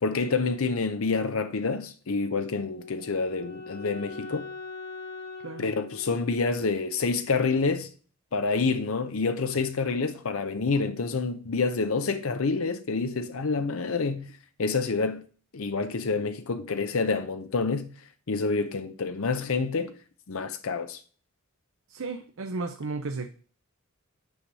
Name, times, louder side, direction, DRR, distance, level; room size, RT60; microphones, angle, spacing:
voice 1, 0.0-4.5 5.6-7.9 8.3-14.3 14.6-15.2 15.5-17.9 18.3-19.9 20.3-21.0, left 4 dB, 75° left, 0.7 m, -28 dB
Wind instrument woodwind instrument, 2.4-7.5, left 3 dB, 55° left, 3.5 m, -43 dB
voice 2, 21.9-23.3, right 3 dB, 70° right, 0.7 m, -34 dB
6.4 x 4.8 x 6.7 m
head